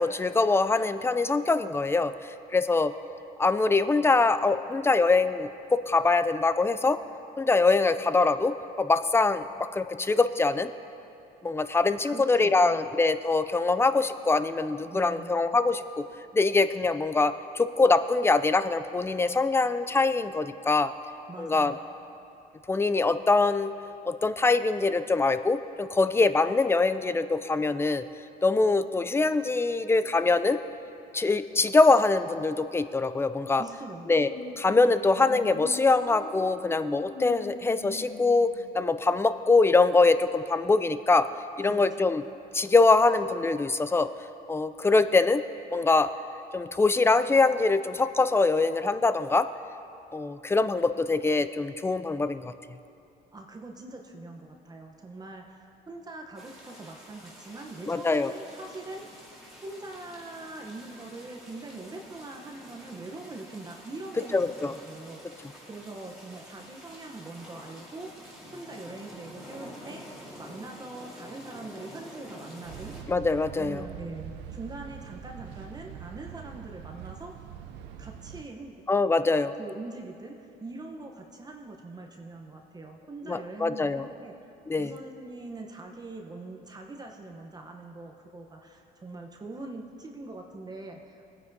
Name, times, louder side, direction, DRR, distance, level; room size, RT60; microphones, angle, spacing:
voice 1, 0.0-2.9 3.4-7.0 7.4-10.7 11.4-16.1 16.3-20.9 21.4-21.7 22.7-23.7 24.1-28.0 28.4-30.6 31.1-33.6 34.1-34.3 34.6-41.3 41.6-42.2 42.5-44.1 44.5-45.4 45.7-46.1 46.5-49.5 50.1-52.5 57.9-58.3 64.3-64.7 73.1-73.8 78.9-79.6 83.2-84.1 84.7-84.9, left 3 dB, 15° left, 12 dB, 0.3 m, -23 dB
voice 2, 12.0-12.9 14.9-15.5 21.3-21.8 33.6-34.1 41.6-42.1 53.3-59.1 59.6-68.1 68.5-70.1 70.4-73.0 73.5-77.4 78.0-78.8 79.6-91.4, right 2 dB, 25° right, 2 dB, 0.8 m, -42 dB
sound 1, 34.0-38.9, left 4 dB, 60° left, 1.6 m, -43 dB
sound 2, 56.3-73.0, equal, ahead, 2.8 m, -48 dB
sound 3, 72.6-78.5, right 9 dB, 90° right, 0.6 m, -43 dB
19.0 x 9.7 x 2.7 m, 2.7 s
cardioid pair, 110°, 17 cm